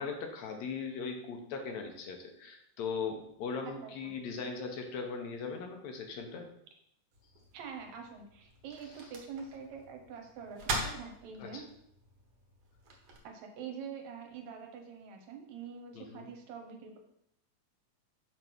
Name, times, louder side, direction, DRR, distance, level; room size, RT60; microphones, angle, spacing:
voice 1, 0.0-6.5 8.8-8.9 11.4-11.6 15.9-16.3, left 5 dB, 75° left, 3 dB, 2.1 m, -39 dB
voice 2, 3.8-4.1 7.5-11.6 13.2-17.0, right 6 dB, 75° right, 3 dB, 2.2 m, -45 dB
sound 1, 7.1-13.2, right 2 dB, 60° right, 2.1 m, -42 dB
6.6 x 3.3 x 5.9 m, 0.74 s
omnidirectional pair, 3.3 m